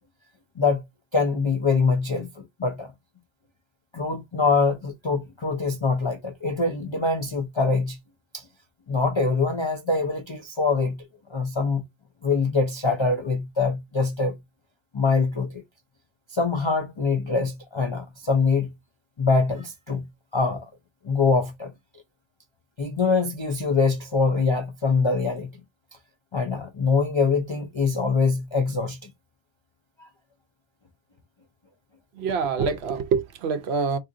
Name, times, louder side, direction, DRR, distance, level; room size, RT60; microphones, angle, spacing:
voice 1, 1.1-2.3 2.6-2.9 3.9-8.0 8.3-8.4 8.9-11.0 11.3-11.8 12.2-14.4 14.9-15.6 16.3-18.7 19.2-20.0 20.3-20.6 21.0-21.7 22.8-25.5 26.3-29.0 30.0-30.1, left 4 dB, 50° left, 0.3 m, -24 dB
voice 2, 32.2-34.0, right 5 dB, 70° right, 0.8 m, -25 dB
3.7 x 2.7 x 2.5 m
omnidirectional pair, 1.2 m